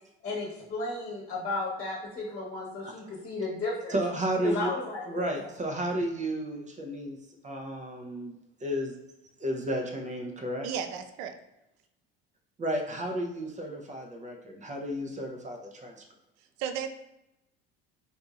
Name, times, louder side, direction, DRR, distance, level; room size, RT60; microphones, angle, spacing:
voice 1, 0.2-4.0 4.4-5.3, left 2 dB, 30° left, -4 dB, 1.2 m, -34 dB
voice 2, 3.9-4.7 5.1-7.2 7.4-8.3 8.6-9.0 9.4-10.7 12.6-16.0, right 1 dB, 25° right, 2 dB, 0.6 m, -32 dB
voice 3, 10.6-11.3 16.6-16.9, right 8 dB, 65° right, 8 dB, 0.5 m, -33 dB
4.0 x 2.7 x 2.4 m, 0.87 s
hypercardioid pair, 70°, 30 cm